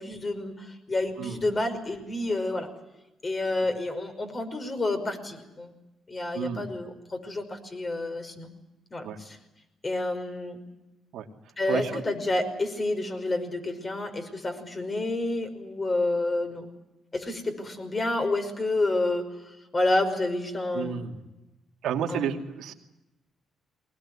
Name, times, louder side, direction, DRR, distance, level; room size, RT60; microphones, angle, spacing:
voice 1, 0.0-2.7 3.2-5.7 6.1-8.5 8.9-9.4 9.8-10.6 11.6-16.7 17.1-19.3 19.7-21.1 22.1-22.3, left 2 dB, 30° left, 6 dB, 5.5 m, -29 dB
voice 2, 6.3-6.7 9.0-9.2 11.1-11.3 11.7-12.0 20.7-21.2 21.8-22.7, right 8 dB, 80° right, 3 dB, 2.5 m, -31 dB
22.5 x 20.5 x 9.9 m, 0.99 s
cardioid pair, 90°, 0 cm